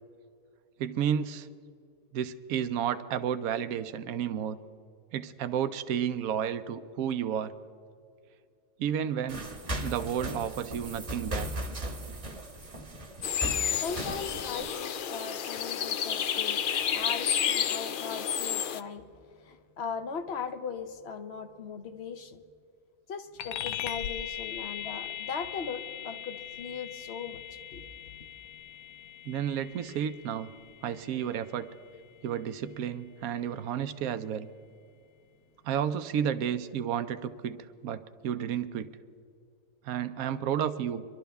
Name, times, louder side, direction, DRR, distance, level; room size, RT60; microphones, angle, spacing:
voice 1, 0.8-1.5 2.1-4.6 5.1-7.5 8.8-9.5 9.8-11.5 29.2-30.5 30.8-31.7 32.2-34.5 35.6-37.6 37.8-38.9 39.8-41.0, right 9 dB, 80° right, 1.1 m, -31 dB
sound 1, 9.3-14.7, right 1 dB, 25° right, 1.0 m, -37 dB
sound 2, 13.2-18.8, left 8 dB, 70° left, 0.5 m, -30 dB
voice 2, 13.7-16.6 16.9-19.1 19.4-22.4 23.1-27.4 27.7-27.8, left 5 dB, 55° left, 1.0 m, -39 dB
sound 3, 23.4-33.2, left 10 dB, 85° left, 1.1 m, -41 dB
23.5 x 12.0 x 3.5 m
omnidirectional pair, 1.5 m